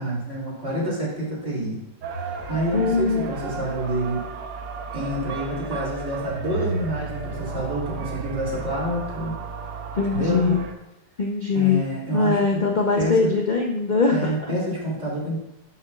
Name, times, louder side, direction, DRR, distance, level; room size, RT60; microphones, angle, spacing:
voice 1, 0.0-1.8 2.2-4.2 4.9-9.4 10.1-10.5 11.5-12.6 13.0-13.3 14.1-15.4, right 1 dB, 35° right, -5 dB, 3.3 m, -28 dB
sound 1, 2.0-10.7, right 5 dB, 65° right, 1.5 m, -33 dB
voice 2, 2.7-3.3 9.9-10.6 11.2-11.8 12.1-14.5, left 4 dB, 60° left, 0 dB, 0.4 m, -22 dB
11.5 x 7.8 x 2.4 m, 0.90 s
omnidirectional pair, 1.9 m